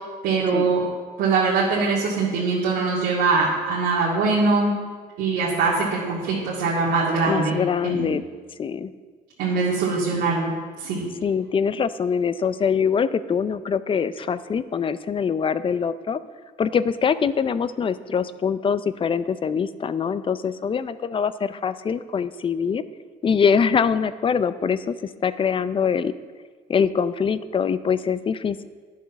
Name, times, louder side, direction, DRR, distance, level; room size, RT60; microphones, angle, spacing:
voice 1, 0.2-0.8 1.2-4.7 5.2-7.6 7.8-8.1 9.4-11.0, right 4 dB, 85° right, -7 dB, 2.5 m, -22 dB
voice 2, 7.3-8.2 8.6-8.9 11.2-16.2 16.6-22.8 23.2-24.9 25.2-26.1 26.7-28.6, left 6 dB, 30° left, 14 dB, 0.5 m, -23 dB
11.0 x 7.2 x 6.0 m, 1.5 s
cardioid pair, 110°, 17 cm